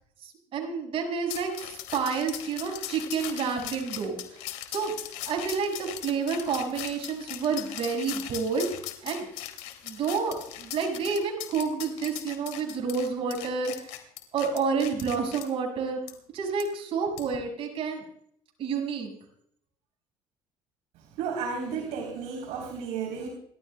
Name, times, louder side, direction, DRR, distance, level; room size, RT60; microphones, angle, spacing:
voice 1, 0.2-4.2 4.7-4.9 5.2-8.7 9.0-9.3 9.8-14.0 14.3-16.0 16.3-18.0 18.6-19.1, right 5 dB, 50° right, 1 dB, 5.6 m, -29 dB
sound 1, 1.3-15.5 16.1-16.2 16.6-16.7 17.2-17.4, left 13 dB, 90° left, 2.4 m, -39 dB
voice 2, 21.2-23.3, right 6 dB, 75° right, 0 dB, 3.7 m, -33 dB
29.0 x 12.5 x 2.3 m, 0.67 s
cardioid pair, 120°, 12 cm